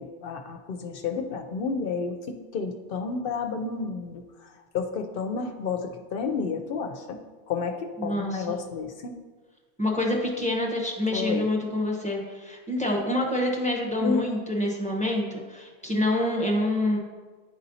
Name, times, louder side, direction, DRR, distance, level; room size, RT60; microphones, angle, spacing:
voice 1, 0.0-4.2 4.7-7.2 7.5-9.1 11.1-11.5 14.0-14.2, left 5 dB, 65° left, 5 dB, 0.7 m, -31 dB
voice 2, 8.0-8.6 9.8-17.0, left 1 dB, 5° left, -2 dB, 0.8 m, -27 dB
10.5 x 4.1 x 2.7 m, 1.4 s
omnidirectional pair, 1.1 m